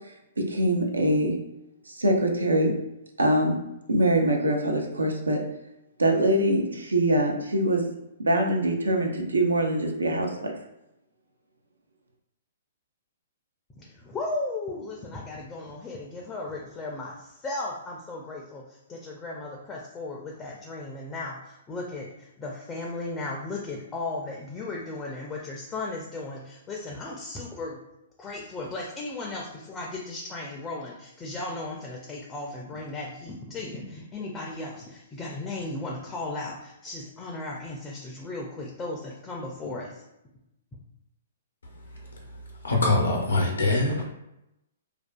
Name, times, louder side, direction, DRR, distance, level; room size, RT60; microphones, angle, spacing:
voice 1, 0.4-1.4 1.9-2.7 3.2-3.6 3.9-5.4 6.0-7.9 8.2-10.5, right 1 dB, 90° right, 2 dB, 0.5 m, -23 dB
voice 2, 13.8-27.8 28.2-40.0, left 2 dB, 20° left, -1 dB, 0.4 m, -36 dB
voice 3, 42.6-44.0, left 2 dB, 85° left, 0 dB, 0.6 m, -23 dB
2.4 x 2.3 x 2.2 m, 0.87 s
hypercardioid pair, 125°, 0 cm